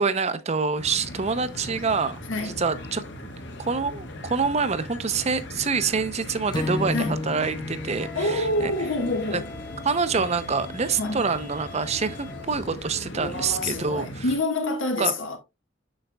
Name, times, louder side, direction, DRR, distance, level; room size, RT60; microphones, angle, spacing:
voice 1, 0.0-3.0 3.6-8.7 9.3-9.4 9.8-14.2 15.0-15.1, right 5 dB, 35° right, 0.6 m, -26 dB
sound 1, 0.8-14.4, left 1 dB, 65° left, 1.4 m, -39 dB
Acoustic guitar / Strum, 6.5-9.8, left 2 dB, 20° left, 0.4 m, -32 dB
Wind instrument woodwind instrument, 8.0-12.5, left 3 dB, 45° left, 1.6 m, -44 dB
voice 2, 8.1-9.5 11.0-11.2 13.1-15.4, left 2 dB, 85° left, 1.6 m, -27 dB
8.0 x 6.4 x 2.3 m
head